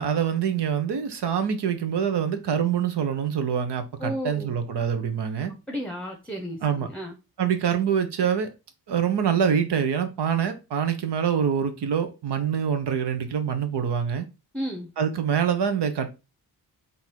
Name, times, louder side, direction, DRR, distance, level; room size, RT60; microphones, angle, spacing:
voice 1, 0.0-5.5 6.6-6.9 7.4-8.5 8.9-14.3 15.0-16.1, right 8 dB, 80° right, 1.0 m, -25 dB
voice 2, 4.0-4.5 5.7-7.1 14.5-14.9, equal, 5° left, 0.8 m, -33 dB
3.9 x 2.8 x 4.6 m
cardioid pair, 85°, 40 cm